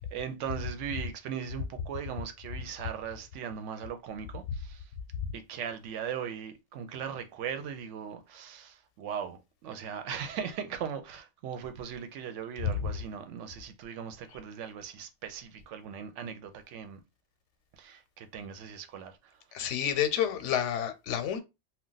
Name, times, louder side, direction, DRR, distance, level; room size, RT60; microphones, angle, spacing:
voice 1, 0.0-4.9 5.3-17.0 17.8-19.4, right 7 dB, 85° right, 0.9 m, -39 dB
voice 2, 19.5-21.4, left 9 dB, 90° left, 0.9 m, -29 dB
2.3 x 2.2 x 3.8 m
omnidirectional pair, 1.2 m